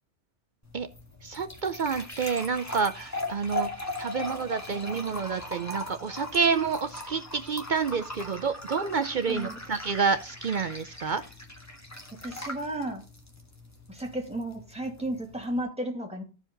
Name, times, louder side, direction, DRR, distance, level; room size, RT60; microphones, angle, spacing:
sound 1, 0.6-15.6, left 2 dB, 15° left, 1.5 m, -39 dB
voice 1, 1.2-3.7 4.0-11.2, right 5 dB, 55° right, 11 dB, 0.6 m, -28 dB
voice 2, 9.3-9.6 12.2-13.0 13.9-16.2, right 1 dB, 5° right, 0 dB, 2.2 m, -33 dB
14.0 x 5.0 x 3.8 m, 0.33 s
omnidirectional pair, 1.3 m